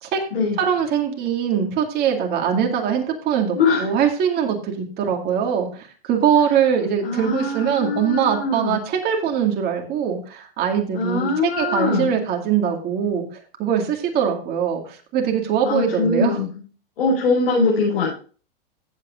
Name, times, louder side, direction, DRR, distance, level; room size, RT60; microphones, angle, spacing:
voice 1, 0.6-16.4, right 8 dB, 35° right, 2 dB, 2.3 m, -22 dB
voice 2, 3.5-3.9 7.0-8.8 10.9-12.1 15.6-16.5 17.0-18.1, left 3 dB, 80° left, -4 dB, 5.7 m, -22 dB
15.0 x 7.9 x 2.5 m, 0.38 s
hypercardioid pair, 140°, 29 cm